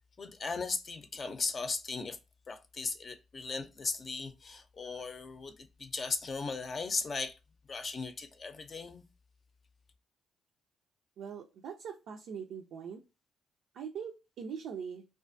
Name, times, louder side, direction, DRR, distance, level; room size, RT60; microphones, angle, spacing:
voice 1, 0.2-2.2 2.5-7.4 7.7-9.0, left 4 dB, 40° left, 0.6 m, -37 dB
voice 2, 11.2-13.0 13.7-15.0, right 7 dB, 75° right, 0.4 m, -42 dB
2.4 x 2.2 x 2.6 m
cardioid pair, 90°, 0 cm